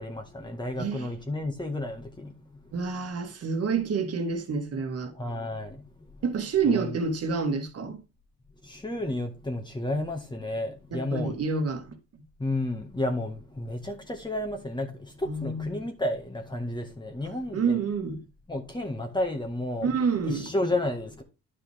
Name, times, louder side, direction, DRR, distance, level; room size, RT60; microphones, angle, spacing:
voice 1, 0.0-2.7 5.1-6.2 6.6-7.0 8.6-11.4 12.4-17.8 18.5-19.9 20.2-21.2, left 1 dB, 15° left, 1.7 m, -32 dB
voice 2, 0.8-1.1 2.7-5.1 6.2-8.0 10.9-12.2 15.3-15.7 17.5-18.2 19.8-20.5, right 5 dB, 50° right, 1.9 m, -28 dB
10.5 x 5.6 x 3.5 m
cardioid pair, 90°, 30 cm